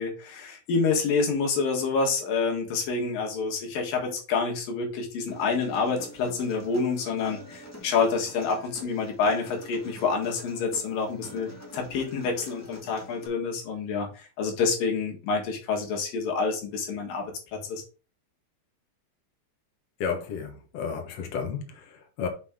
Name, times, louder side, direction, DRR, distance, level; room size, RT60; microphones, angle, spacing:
voice 1, 0.0-17.8, left 4 dB, 75° left, 3.2 m, -28 dB
Human voice, 5.3-13.3, left 1 dB, 20° left, 0.4 m, -46 dB
voice 2, 20.0-22.3, left 6 dB, 55° left, 2.0 m, -32 dB
6.0 x 5.8 x 3.7 m
omnidirectional pair, 4.1 m